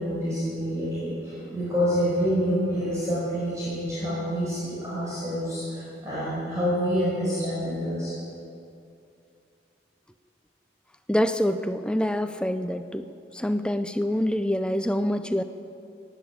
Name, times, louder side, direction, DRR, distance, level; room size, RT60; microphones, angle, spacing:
voice 1, 0.0-8.1, equal, 15° right, -9 dB, 5.0 m, -27 dB
voice 2, 11.1-13.1 13.3-15.4, left 1 dB, 5° left, 10 dB, 0.5 m, -26 dB
15.5 x 10.0 x 8.9 m, 2.5 s
head